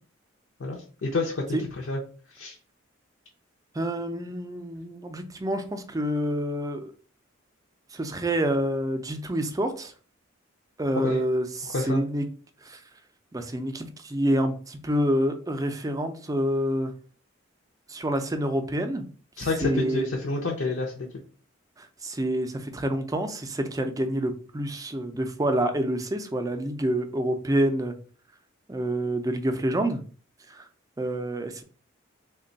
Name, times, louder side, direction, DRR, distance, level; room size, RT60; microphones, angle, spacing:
voice 1, 0.6-2.0 2.3-2.5 11.0-11.2 11.6-12.0 19.4-21.1, left 2 dB, 65° left, -1 dB, 0.6 m, -29 dB
voice 2, 3.7-6.9 7.9-9.9 10.8-12.2 12.6-12.8 13.3-16.9 17.9-19.0 19.4-20.1 21.8-27.9 28.7-30.0 30.5-30.7 31.0-31.6, right 1 dB, 15° right, 7 dB, 0.4 m, -27 dB
3.3 x 2.2 x 3.9 m, 0.40 s
head